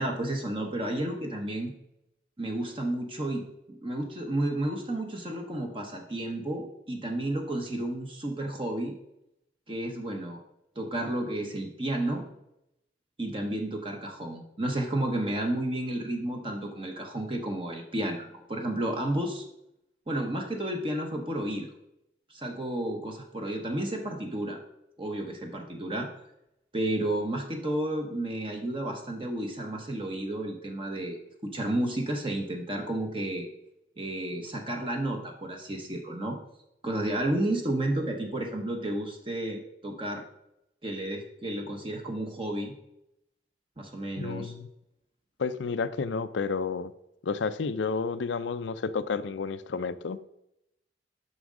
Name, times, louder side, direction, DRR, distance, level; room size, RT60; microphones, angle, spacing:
voice 1, 0.0-1.7 2.4-8.9 9.7-10.4 10.8-12.2 13.2-19.4 20.1-21.7 22.3-24.6 25.0-26.1 26.7-33.5 34.0-36.4 36.8-40.2 40.8-42.7 43.8-44.5, right 1 dB, 30° right, 2 dB, 0.9 m, -32 dB
voice 2, 44.2-44.7 45.4-46.9 47.2-50.2, left 5 dB, 80° left, 14 dB, 0.5 m, -31 dB
9.4 x 6.2 x 3.7 m, 0.82 s
head